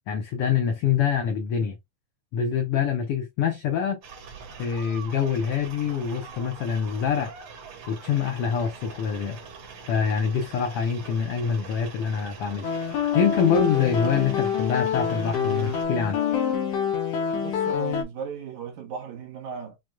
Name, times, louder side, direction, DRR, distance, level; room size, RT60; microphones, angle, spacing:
voice 1, 0.1-1.8 2.3-4.0 4.6-7.3 7.9-9.4 9.9-16.2, left 7 dB, 85° left, 1.3 m, -25 dB
sound 1, 4.0-15.9, right 5 dB, 60° right, 2.3 m, -43 dB
sound 2, 12.6-18.0, left 7 dB, 65° left, 1.9 m, -26 dB
voice 2, 17.3-19.8, right 6 dB, 80° right, 2.7 m, -36 dB
6.2 x 2.2 x 2.4 m
omnidirectional pair, 3.4 m